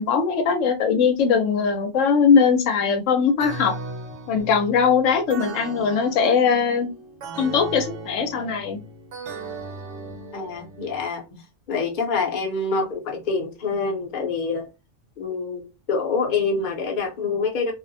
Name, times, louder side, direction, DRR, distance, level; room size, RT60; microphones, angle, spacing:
voice 1, 0.0-3.7 4.3-6.9 7.4-8.8, left 6 dB, 80° left, 1.0 m, -20 dB
sound 1, 3.4-11.0, right 3 dB, 70° right, 0.9 m, -37 dB
voice 2, 10.3-11.2 11.7-14.7 15.2-15.6 15.9-17.7, left 4 dB, 45° left, 0.7 m, -26 dB
2.5 x 2.1 x 2.6 m
omnidirectional pair, 1.3 m